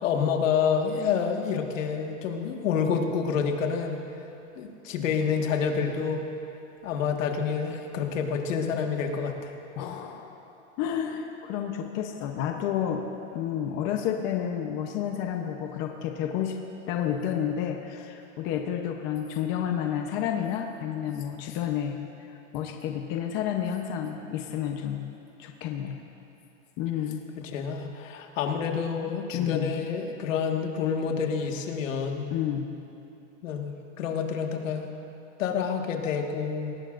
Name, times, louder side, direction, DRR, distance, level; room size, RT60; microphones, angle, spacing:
voice 1, 0.0-4.0 4.6-6.2 6.8-9.5 27.4-32.2 33.4-34.9 35.4-36.7, left 6 dB, 75° left, 3 dB, 1.8 m, -28 dB
voice 2, 9.8-10.4 10.8-13.0 13.3-16.5 16.9-22.0 22.5-25.1 25.4-25.9 26.8-27.2 29.3-29.7 32.3-32.7, left 9 dB, 30° left, 3 dB, 0.8 m, -30 dB
22.5 x 18.5 x 2.6 m, 2.8 s
supercardioid pair, 165°, 39 cm